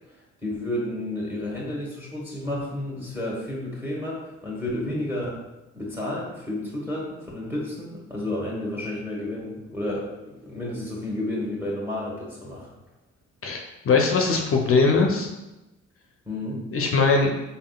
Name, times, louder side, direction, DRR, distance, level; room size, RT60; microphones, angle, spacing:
voice 1, 0.4-5.4 5.7-12.7 16.3-16.6, left 1 dB, 5° right, -4 dB, 1.1 m, -31 dB
voice 2, 13.4-15.3 16.7-17.3, left 4 dB, 45° left, 1 dB, 0.6 m, -21 dB
4.0 x 3.6 x 2.3 m, 0.99 s
cardioid pair, 90°, 30 cm